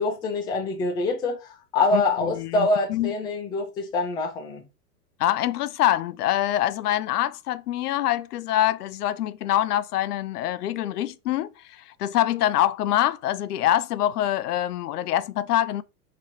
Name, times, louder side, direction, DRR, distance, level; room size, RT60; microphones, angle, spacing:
voice 1, 0.0-4.6, left 3 dB, 10° left, 0.4 m, -25 dB
voice 2, 1.9-3.1 5.2-15.8, left 13 dB, 70° left, 0.5 m, -25 dB
3.0 x 2.8 x 4.3 m
hypercardioid pair, 115°, 48 cm